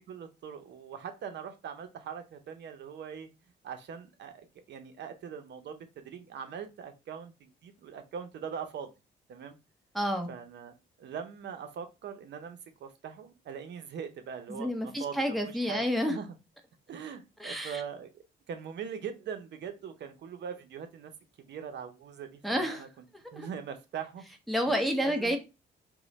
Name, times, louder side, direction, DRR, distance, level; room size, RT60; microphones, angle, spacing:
voice 1, 0.1-3.3 3.6-8.9 9.3-9.6 10.3-16.3 16.9-18.1 18.5-21.1 21.4-22.9 23.3-24.2 24.7-25.4, right 7 dB, 60° right, 0.6 m, -41 dB
voice 2, 9.9-10.3 14.5-16.2 17.4-17.8 22.4-22.8 23.4-23.5 24.5-25.4, equal, ahead, 0.7 m, -29 dB
3.0 x 2.1 x 4.0 m
cardioid pair, 90°, 20 cm